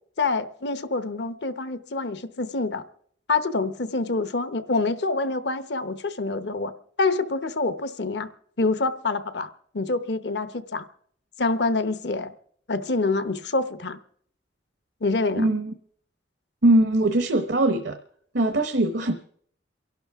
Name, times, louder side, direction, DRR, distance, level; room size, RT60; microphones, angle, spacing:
voice 1, 0.2-2.8 3.3-6.7 7.0-8.3 8.6-10.8 11.4-12.3 12.7-14.0 15.0-15.5, left 3 dB, 65° left, 12 dB, 0.9 m, -26 dB
voice 2, 15.4-15.7 16.6-18.0 18.3-19.1, right 1 dB, 70° right, 7 dB, 0.9 m, -21 dB
29.0 x 11.5 x 3.5 m, 0.63 s
head